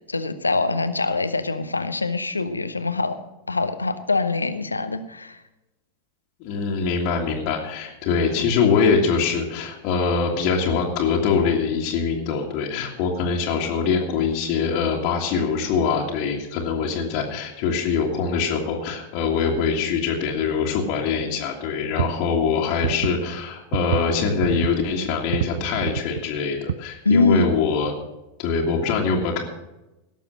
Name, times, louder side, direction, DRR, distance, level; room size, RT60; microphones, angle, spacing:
voice 1, 0.1-3.2 3.5-5.4 27.0-27.4, left 3 dB, 80° left, 10 dB, 0.9 m, -23 dB
voice 2, 6.4-27.9 28.4-29.4, left 5 dB, 45° left, -2 dB, 2.0 m, -23 dB
sound 1, 21.9-23.4 23.7-24.0 24.3-24.9 25.3-26.2 26.7-26.8 27.7-27.8, right 10 dB, 60° right, 0.4 m, -27 dB
17.5 x 7.0 x 6.4 m, 0.99 s
figure-of-eight pair, 90°, 0 cm